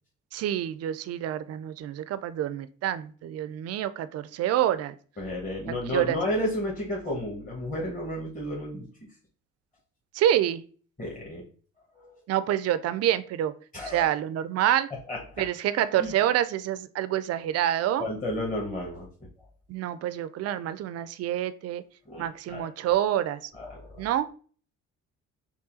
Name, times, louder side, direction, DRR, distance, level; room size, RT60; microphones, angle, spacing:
voice 1, 0.3-5.0 5.6-6.2 10.1-10.6 12.3-13.5 13.9-14.9 15.4-18.1 19.7-21.8 22.2-23.5 24.0-24.3, right 11 dB, 45° right, 14 dB, 0.4 m, -27 dB
voice 2, 5.2-8.9 11.0-11.4 11.9-12.2 13.7-14.1 14.9-15.4 16.0-16.1 18.0-19.1 22.1-22.7 23.5-24.0, left 1 dB, 20° left, -3 dB, 1.3 m, -32 dB
5.4 x 2.3 x 2.6 m, 0.42 s
hypercardioid pair, 55°, 36 cm